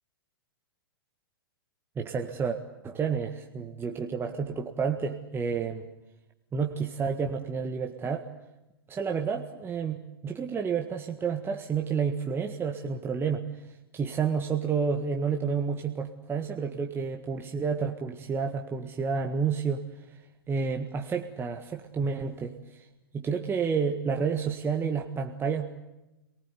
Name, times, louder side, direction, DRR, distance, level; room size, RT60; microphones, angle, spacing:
voice 1, 2.0-2.6 2.8-5.9 6.5-8.3 8.9-13.7 13.9-19.8 20.5-22.9 23.1-25.7, right 5 dB, 20° right, 3 dB, 1.7 m, -30 dB
26.5 x 19.5 x 9.6 m, 0.98 s
hypercardioid pair, 115°, 13 cm